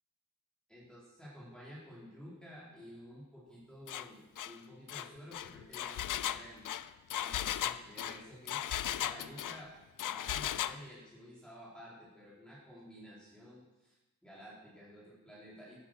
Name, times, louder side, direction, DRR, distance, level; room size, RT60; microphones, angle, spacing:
voice 1, 0.7-6.7 7.2-9.7 10.1-15.8, equal, 5° left, -7 dB, 4.5 m, -52 dB
Engine, 3.9-4.1 4.4-4.6 4.9-9.6 10.0-10.8, left 11 dB, 85° left, 0.6 m, -36 dB
14.5 x 11.5 x 6.8 m, 1.1 s
wide cardioid pair, 115°, 31 cm